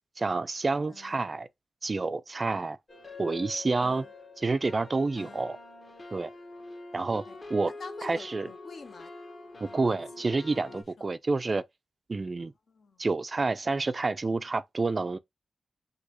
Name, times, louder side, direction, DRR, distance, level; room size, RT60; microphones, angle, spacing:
voice 1, 0.2-1.5 1.8-2.8 3.2-4.0 4.4-5.6 6.1-6.3 6.9-7.2 7.5-7.7 8.0-8.5 9.6-11.6 12.1-12.5 13.0-15.2, right 3 dB, 35° right, 0.3 m, -29 dB
voice 2, 0.9-1.2 3.8-4.1 5.1-5.5 6.9-7.4 7.8-9.1 9.7-10.0 10.5-11.1 12.4-13.0, left 4 dB, 60° left, 0.7 m, -49 dB
sound 1, 2.9-10.8, left 3 dB, 45° left, 1.3 m, -45 dB
6.2 x 2.7 x 3.0 m
wide cardioid pair, 100°, 0 cm